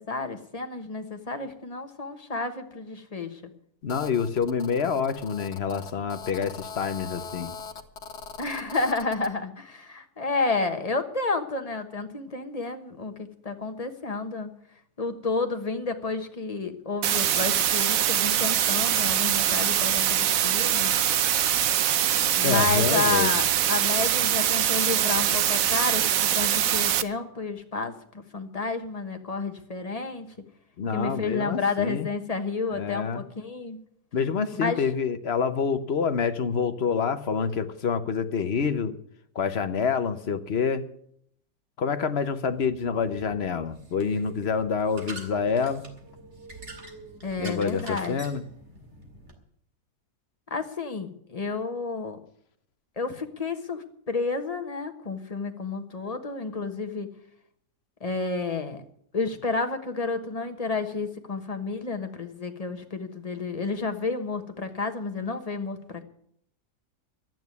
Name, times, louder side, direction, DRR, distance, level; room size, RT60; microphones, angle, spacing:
voice 1, 0.0-3.4 8.4-14.5 15.0-20.9 22.4-30.3 30.9-33.8 34.5-34.8 47.2-48.2 50.5-52.2 53.0-57.1 58.0-58.8 59.1-66.0, left 3 dB, 25° left, 6 dB, 1.2 m, -30 dB
voice 2, 3.8-7.5 22.4-23.3 30.8-32.1 32.7-33.2 34.1-39.0 39.3-40.8 41.8-45.8 47.4-48.4, left 6 dB, 45° left, 10 dB, 1.0 m, -27 dB
Telephone, 3.9-9.3, left 5 dB, 80° left, 1.7 m, -41 dB
sound 1, 17.0-27.0, right 10 dB, 65° right, 1.0 m, -23 dB
sound 2, 42.4-49.3, right 2 dB, 45° right, 2.5 m, -46 dB
12.5 x 9.2 x 9.4 m, 0.68 s
omnidirectional pair, 1.7 m